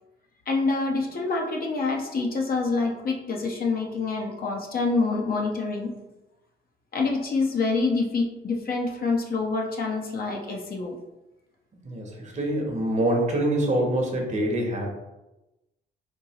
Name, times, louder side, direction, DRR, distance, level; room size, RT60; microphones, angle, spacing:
voice 1, 0.5-5.9 6.9-11.0, left 3 dB, 50° left, 0 dB, 0.8 m, -26 dB
voice 2, 11.8-14.9, right 1 dB, 35° right, 1 dB, 1.0 m, -25 dB
4.5 x 2.6 x 2.8 m, 0.98 s
cardioid pair, 90°, 20 cm